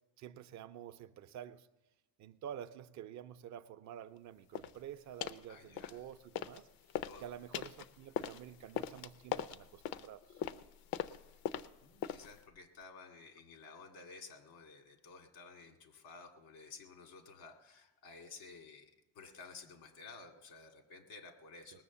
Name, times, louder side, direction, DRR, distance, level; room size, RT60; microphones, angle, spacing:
voice 1, 0.2-1.7 2.2-6.7 7.2-10.4, right 10 dB, 50° right, 12 dB, 0.5 m, -49 dB
sound 1, 4.5-4.8 5.2-5.5 5.8-6.6 6.9-12.4, left 10 dB, 70° left, 0.6 m, -41 dB
voice 2, 5.5-5.9 7.0-7.2 11.1-11.2 11.8-21.8, left 4 dB, 90° left, 5 dB, 2.1 m, -54 dB
19.5 x 7.0 x 7.0 m, 1.0 s
cardioid pair, 160°, 37 cm